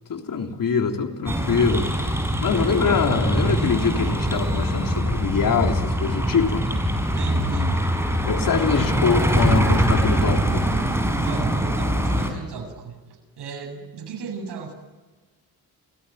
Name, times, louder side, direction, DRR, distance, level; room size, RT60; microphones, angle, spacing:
voice 1, 0.1-2.1 2.4-6.7 8.3-10.7, left 5 dB, 55° left, 3 dB, 3.5 m, -24 dB
sound 1, 1.3-12.3, equal, 5° right, 5.5 m, -23 dB
voice 2, 7.1-7.9 11.1-14.7, right 6 dB, 85° right, 2 dB, 8.0 m, -35 dB
29.5 x 17.5 x 9.3 m, 1.3 s
cardioid pair, 110°, 39 cm